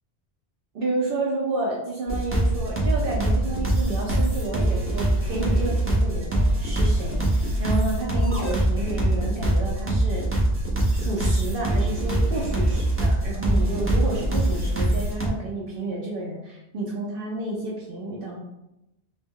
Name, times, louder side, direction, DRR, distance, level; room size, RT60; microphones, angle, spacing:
voice 1, 0.7-10.3 10.9-18.4, right 2 dB, 65° right, -4 dB, 0.7 m, -30 dB
sound 1, 2.1-15.3, right 1 dB, 20° right, 0.3 m, -23 dB
2.1 x 2.0 x 3.5 m, 0.90 s
omnidirectional pair, 1.1 m